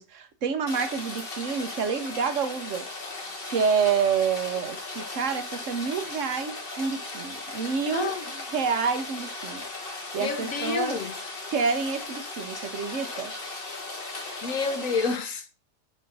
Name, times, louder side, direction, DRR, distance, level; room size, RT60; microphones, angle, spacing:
voice 1, 0.0-2.9 3.5-11.0 11.5-13.3, right 6 dB, 55° right, 1.0 m, -28 dB
Rain, 0.7-15.2, left 2 dB, 35° left, 1.7 m, -37 dB
voice 2, 7.9-8.2 10.2-11.1 14.4-15.5, left 4 dB, 55° left, 1.4 m, -29 dB
5.4 x 4.5 x 5.2 m
omnidirectional pair, 1.8 m